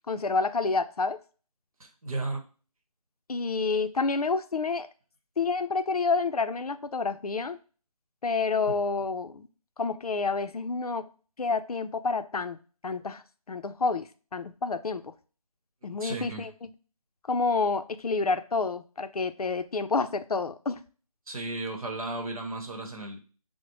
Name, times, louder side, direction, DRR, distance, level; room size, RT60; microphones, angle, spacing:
voice 1, 0.1-1.2 3.3-4.9 5.4-7.6 8.2-9.5 9.8-11.1 11.4-12.6 12.8-15.1 15.8-16.5 17.3-20.8, left 4 dB, 70° left, 10 dB, 0.5 m, -29 dB
voice 2, 1.8-2.4 8.7-8.8 16.0-16.5 21.3-23.2, right 2 dB, 60° right, 3 dB, 0.9 m, -34 dB
4.8 x 2.1 x 3.1 m, 0.38 s
figure-of-eight pair, 155°, 20 cm